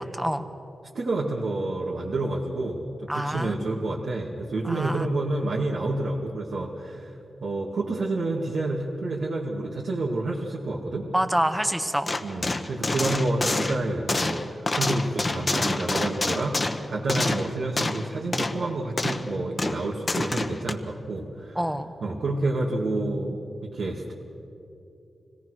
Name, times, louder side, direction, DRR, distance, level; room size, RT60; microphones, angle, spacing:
voice 1, 0.1-0.5 3.1-3.6 4.6-5.1 11.1-12.1 21.5-21.9, equal, 5° right, 8 dB, 1.1 m, -26 dB
voice 2, 0.9-2.8 3.1-7.1 7.4-11.1 12.2-21.6 22.0-23.4 23.7-24.1, right 2 dB, 75° right, -4 dB, 2.1 m, -29 dB
sound 1, 12.1-18.1 18.3-18.6 19.0-19.3 19.6-20.7, left 2 dB, 30° left, 1.0 m, -27 dB
25.5 x 17.5 x 6.4 m, 2.8 s
wide cardioid pair, 95°, 0 cm